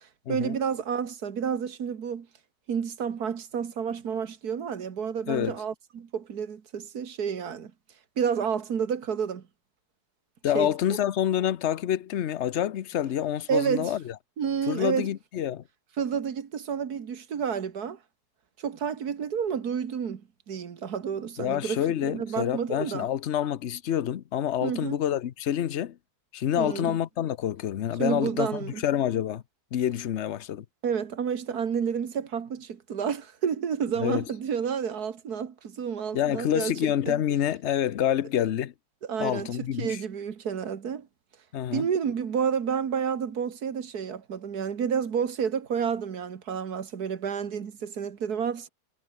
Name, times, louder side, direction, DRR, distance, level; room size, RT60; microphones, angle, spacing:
voice 1, 0.3-2.3 2.7-7.7 8.2-9.4 10.5-10.7 13.5-13.9 14.4-15.1 16.0-18.0 18.6-20.2 20.5-23.1 24.6-25.0 26.6-27.0 28.0-28.8 30.8-37.2 39.1-41.1 41.7-48.7, right 7 dB, 60° right, 2.0 m, -30 dB
voice 2, 10.4-14.1 14.7-15.6 21.4-26.0 26.3-29.4 29.7-30.6 34.0-34.2 36.1-38.7 39.2-40.0 41.5-41.9, left 10 dB, 55° left, 0.8 m, -27 dB
omnidirectional pair, 1.9 m